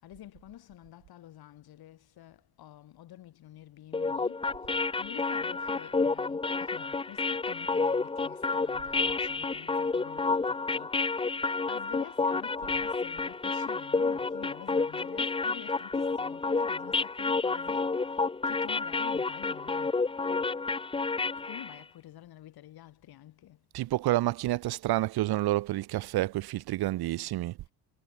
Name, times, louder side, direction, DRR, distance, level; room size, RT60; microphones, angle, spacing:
voice 1, 0.0-18.1 18.5-20.0 21.4-23.6, left 13 dB, 55° left, 7.3 m, -49 dB
sound 1, 3.9-21.8, left 4 dB, 10° left, 1.1 m, -30 dB
voice 2, 23.7-27.6, right 16 dB, 60° right, 1.2 m, -29 dB
cardioid pair, 155°, 43 cm